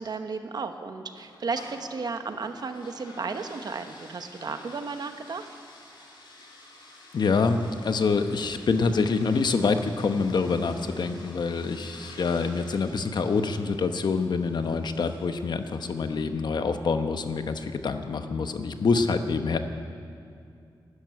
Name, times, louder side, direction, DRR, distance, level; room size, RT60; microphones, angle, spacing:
voice 1, 0.0-5.5, right 4 dB, 55° right, 8 dB, 1.0 m, -34 dB
sound 1, 1.1-16.3, left 2 dB, 90° left, 3.4 m, -50 dB
voice 2, 7.1-19.6, left 4 dB, 65° left, 8 dB, 0.9 m, -26 dB
12.0 x 11.5 x 9.5 m, 2.4 s
wide cardioid pair, 135°, 8 cm